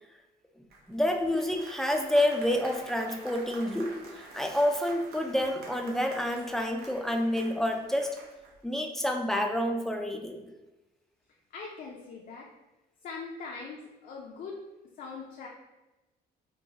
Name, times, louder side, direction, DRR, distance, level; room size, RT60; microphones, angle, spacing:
Applause, 0.7-8.6, right 3 dB, 70° right, 0.9 m, -48 dB
voice 1, 0.9-8.1 8.6-10.5, left 1 dB, ahead, 3 dB, 0.4 m, -28 dB
voice 2, 11.5-12.5 13.0-14.6 15.0-15.5, left 4 dB, 55° left, -1 dB, 0.6 m, -41 dB
4.5 x 2.3 x 2.8 m, 1.1 s
cardioid pair, 110°, 17 cm